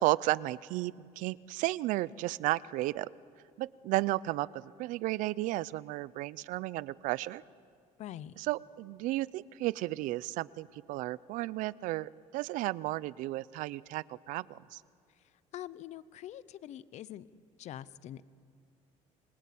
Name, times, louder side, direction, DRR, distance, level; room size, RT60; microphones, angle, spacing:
voice 1, 0.0-3.1 3.6-7.4 8.4-14.8, right 17 dB, 80° right, 20 dB, 0.6 m, -33 dB
voice 2, 8.0-8.3 15.5-17.3 17.6-18.2, left 12 dB, 60° left, 17 dB, 0.8 m, -44 dB
28.0 x 23.5 x 8.6 m, 2.3 s
cardioid pair, 125°, 13 cm